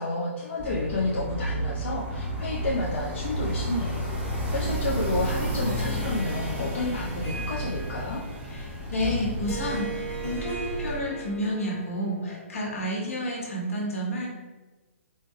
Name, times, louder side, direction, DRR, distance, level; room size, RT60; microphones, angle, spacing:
voice 1, 0.0-8.2, left 2 dB, 55° left, -4 dB, 0.6 m, -30 dB
sound 1, 0.6-11.0, right 1 dB, 15° right, 0.8 m, -31 dB
Harp, 3.8-12.3, right 2 dB, 15° left, 0.9 m, -40 dB
voice 2, 8.5-14.3, equal, 80° left, -3 dB, 1.3 m, -30 dB
4.2 x 2.2 x 3.2 m, 1.2 s
hypercardioid pair, 135°, 8 cm